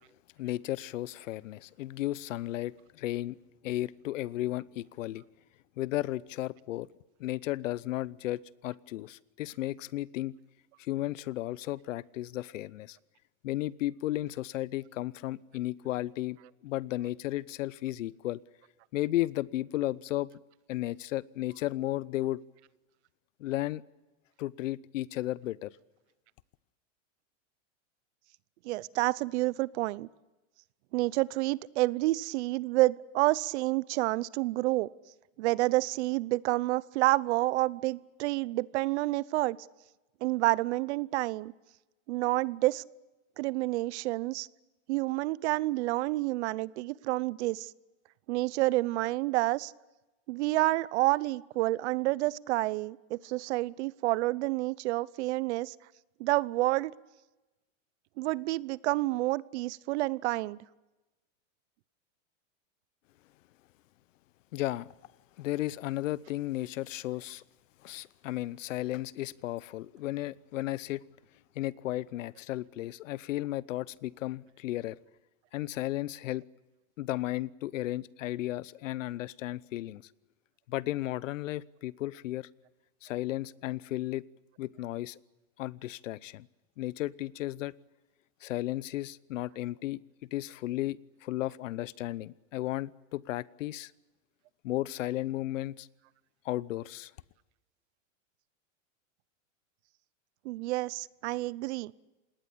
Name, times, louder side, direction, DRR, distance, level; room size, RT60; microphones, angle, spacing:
voice 1, 0.4-3.4 3.6-5.2 5.8-6.9 7.2-10.3 10.8-13.0 13.4-16.4 16.6-18.4 18.9-20.3 20.7-22.4 23.4-23.8 24.4-25.7 64.5-64.9 65.4-67.4 67.8-71.0 71.5-75.0 75.5-76.4 77.0-80.0 80.7-82.5 83.0-84.2 84.6-85.2 85.6-86.5 86.8-87.7 88.4-90.0 90.3-93.9 94.6-95.9 96.4-97.1, left 15 dB, 80° left, 21 dB, 0.9 m, -34 dB
voice 2, 28.6-30.1 30.9-34.9 35.4-39.6 40.2-41.5 42.1-42.8 43.4-44.5 44.9-47.7 48.3-49.7 50.3-55.7 56.2-56.9 58.2-60.6 100.4-101.9, right 19 dB, 60° right, 22 dB, 0.8 m, -29 dB
27.5 x 19.5 x 8.5 m, 1.1 s
supercardioid pair, 140°, 38 cm